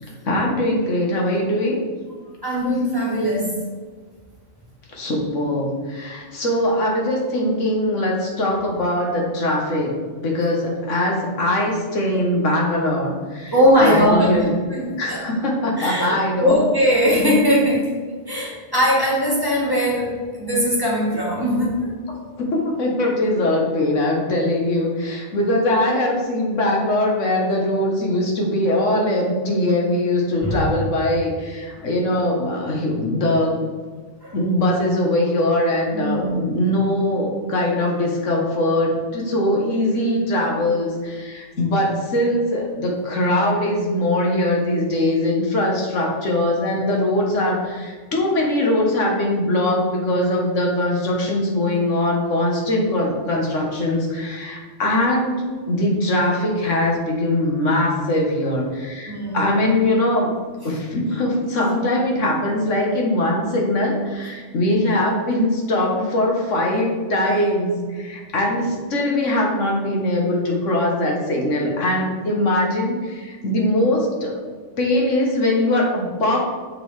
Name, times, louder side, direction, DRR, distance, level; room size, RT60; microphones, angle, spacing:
voice 1, 0.2-1.8 4.9-9.9 10.2-14.5 15.0-16.5 22.1-33.7 34.3-60.3 60.6-74.4 74.8-76.4, left 1 dB, 80° left, -1 dB, 1.6 m, -21 dB
voice 2, 2.4-3.6 13.5-14.4 14.7-15.2 15.8-17.9 18.3-21.9 30.4-30.6 31.7-31.9 34.2-34.4 35.9-36.5 59.1-59.4, equal, 20° right, -5 dB, 1.9 m, -20 dB
6.7 x 3.8 x 4.8 m, 1.5 s
omnidirectional pair, 1.3 m